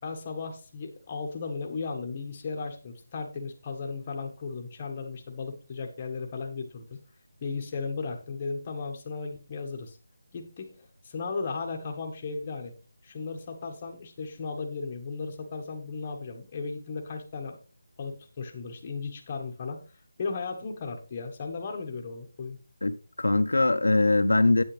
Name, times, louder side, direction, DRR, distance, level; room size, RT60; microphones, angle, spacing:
voice 1, 0.0-7.0 7.4-10.0 10.3-12.7 13.0-17.6 18.0-19.8 20.2-22.6, left 4 dB, 25° left, 1.4 m, -36 dB
voice 2, 22.8-24.6, left 2 dB, 90° left, 1.0 m, -22 dB
9.1 x 8.9 x 3.3 m
figure-of-eight pair, 170°, 0 cm